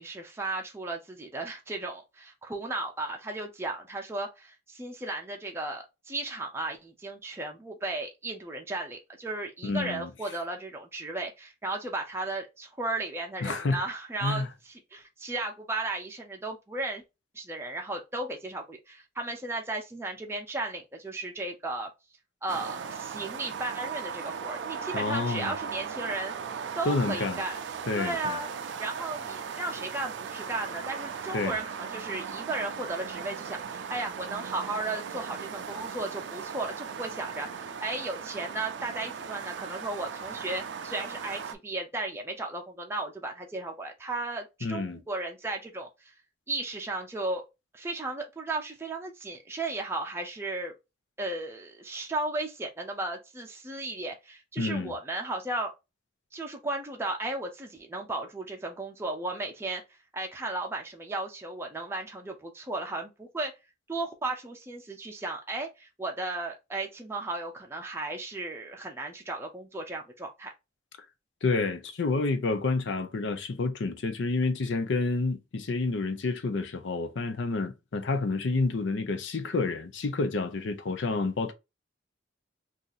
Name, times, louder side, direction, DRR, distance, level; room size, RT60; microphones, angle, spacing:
voice 1, 0.0-17.0 17.3-21.9 22.4-26.3 26.8-27.6 27.9-28.5 28.8-46.1 46.5-47.4 47.7-50.7 51.2-55.7 56.3-59.8 60.1-63.5 63.9-70.5, right 2 dB, 15° right, 0.5 m, -35 dB
voice 2, 9.6-10.1 13.4-13.8 14.2-14.5 24.9-25.5 26.9-27.4 27.9-28.4 31.3-31.6 44.6-45.0 54.6-54.9 71.4-81.5, left 3 dB, 75° left, 0.5 m, -29 dB
sound 1, 22.5-41.5, right 6 dB, 70° right, 0.4 m, -38 dB
2.7 x 2.5 x 3.9 m
head